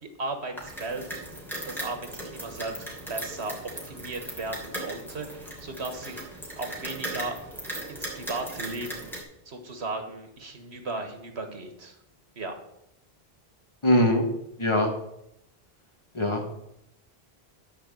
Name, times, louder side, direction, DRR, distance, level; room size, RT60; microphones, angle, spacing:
voice 1, 0.2-1.2 1.5-2.0 2.2-2.7 3.1-3.6 3.8-7.4 7.9-9.1 9.5-12.0 12.4-12.5, right 3 dB, 90° right, 6 dB, 1.8 m, -36 dB
sound 1, 0.6-9.2, right 1 dB, ahead, 2.9 m, -38 dB
voice 2, 13.8-14.3 14.6-14.9 16.1-16.4, left 1 dB, 25° left, 2 dB, 1.9 m, -21 dB
12.5 x 4.8 x 7.6 m, 0.80 s
omnidirectional pair, 1.1 m